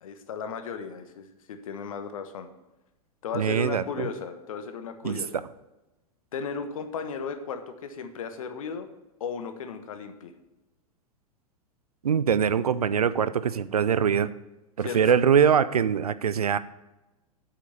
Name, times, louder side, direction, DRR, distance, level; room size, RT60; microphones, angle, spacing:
voice 1, 0.0-2.5 3.2-5.3 6.3-8.9 9.2-10.3 14.8-15.2, left 5 dB, 65° left, 8 dB, 1.3 m, -35 dB
voice 2, 3.3-4.1 5.0-5.4 12.0-14.3 14.8-16.6, right 7 dB, 80° right, 15 dB, 0.6 m, -23 dB
8.2 x 6.1 x 6.8 m, 1.0 s
figure-of-eight pair, 95°, 19 cm